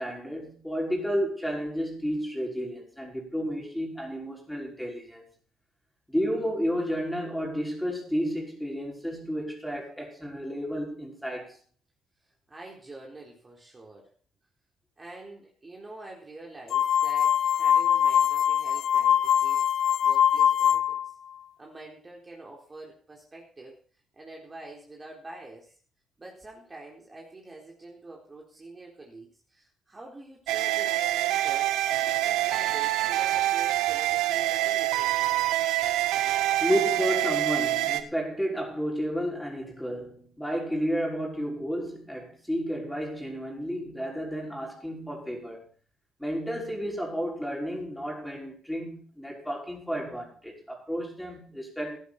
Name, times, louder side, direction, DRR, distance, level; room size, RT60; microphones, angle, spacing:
voice 1, 0.0-5.3 6.1-11.6 36.6-45.7 46.2-52.0, equal, 5° left, 5.6 m, -31 dB
voice 2, 12.5-14.1 15.0-19.6 20.0-21.1 21.6-23.8 24.1-25.7 26.2-31.7 32.0-35.2, right 2 dB, 25° right, 3.8 m, -46 dB
sound 1, 16.7-21.1, left 9 dB, 70° left, 0.7 m, -23 dB
sound 2, 30.5-38.0, right 14 dB, 85° right, 1.0 m, -26 dB
16.5 x 11.0 x 4.3 m
cardioid pair, 80°, 0 cm